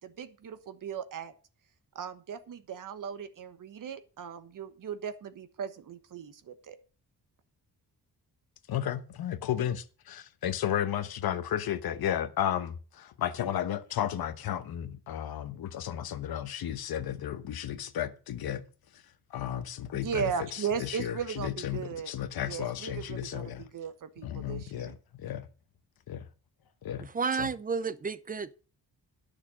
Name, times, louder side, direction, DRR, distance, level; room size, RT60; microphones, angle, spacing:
voice 1, 0.0-1.3 1.9-6.8 19.9-22.1 22.4-24.9, right 7 dB, 55° right, 1.2 m, -37 dB
voice 2, 8.7-18.6 19.3-20.3 20.8-23.6 24.2-25.5 26.1-26.2 26.8-27.1 27.4-27.5, left 10 dB, 65° left, 1.1 m, -33 dB
voice 3, 27.0-28.5, right 5 dB, 20° right, 0.4 m, -31 dB
11.0 x 6.7 x 6.2 m
wide cardioid pair, 175°, 39 cm